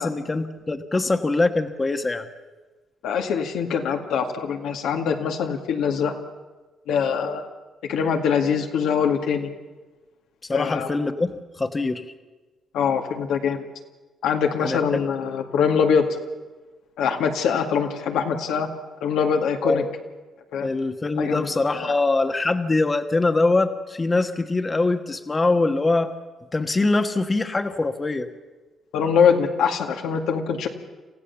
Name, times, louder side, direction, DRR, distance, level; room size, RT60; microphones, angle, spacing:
voice 1, 0.0-2.3 10.5-12.0 14.6-15.0 19.6-19.9 20.6-26.1 26.5-28.3, left 3 dB, 25° left, 7 dB, 1.2 m, -23 dB
voice 2, 3.0-6.1 6.9-7.5 7.9-9.5 10.5-10.9 12.7-13.7 14.2-16.2 17.0-18.7 19.0-19.8 20.5-20.7 21.2-21.5 21.7-22.0 28.9-30.7, left 6 dB, 85° left, 3 dB, 2.1 m, -23 dB
27.5 x 15.0 x 7.1 m, 1.3 s
cardioid pair, 90°, 0 cm